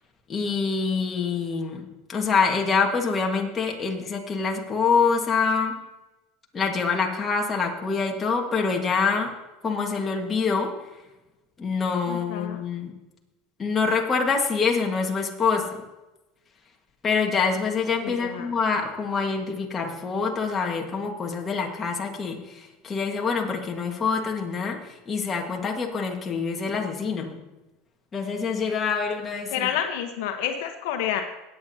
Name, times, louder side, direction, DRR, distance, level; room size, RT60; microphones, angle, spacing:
voice 1, 0.3-1.8 2.1-5.8 6.5-9.3 9.6-10.9 11.6-12.9 13.6-15.8 17.0-27.4 28.1-29.7, left 5 dB, 25° left, 1 dB, 1.6 m, -25 dB
voice 2, 12.1-12.6 18.0-18.5 29.5-31.2, left 9 dB, 75° left, 5 dB, 1.0 m, -29 dB
18.5 x 8.6 x 2.8 m, 1.0 s
supercardioid pair, 125°, 0 cm